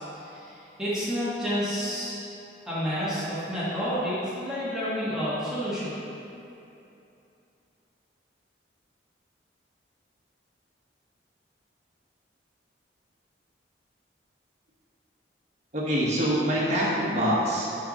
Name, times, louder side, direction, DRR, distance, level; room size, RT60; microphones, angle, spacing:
voice 1, 0.0-2.2 2.7-5.9, equal, 5° right, -11 dB, 1.3 m, -30 dB
voice 2, 15.7-17.7, equal, 40° right, -6 dB, 1.2 m, -25 dB
5.6 x 3.5 x 5.3 m, 2.8 s
head